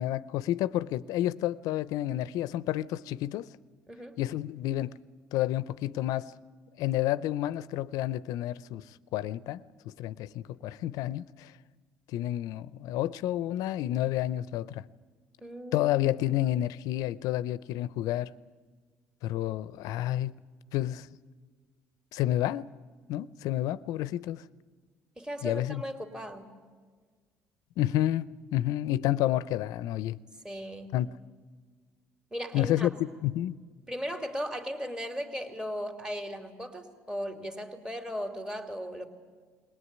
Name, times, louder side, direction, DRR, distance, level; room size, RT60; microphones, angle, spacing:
voice 1, 0.0-3.5 4.2-5.0 5.3-6.3 6.8-8.9 9.1-11.5 12.1-14.8 15.7-18.3 19.2-20.3 20.7-21.1 22.1-22.7 23.1-24.4 25.4-25.8 27.8-30.2 30.9-31.1 32.5-33.6, left 13 dB, 75° left, 0.6 m, -30 dB
voice 2, 3.9-4.2 15.4-16.1 25.2-26.5 30.4-31.0 32.3-33.0 33.9-39.1, equal, 10° right, 2.8 m, -37 dB
21.0 x 18.0 x 9.7 m
supercardioid pair, 85°, 6 cm